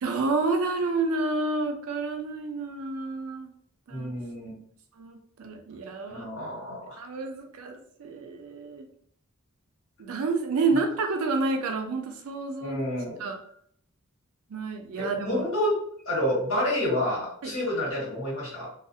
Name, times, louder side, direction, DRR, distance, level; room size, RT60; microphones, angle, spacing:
voice 1, 0.0-3.5 3.9-4.1 5.0-6.2 7.0-8.8 10.0-12.8 13.2-13.4 14.5-15.4 17.4-17.5, right 3 dB, 80° right, 4 dB, 0.5 m, -29 dB
voice 2, 3.9-4.6 6.1-7.0 12.6-13.3 15.0-15.8 16.0-18.7, left 1 dB, 75° left, -6 dB, 1.3 m, -29 dB
2.4 x 2.0 x 2.6 m, 0.64 s
head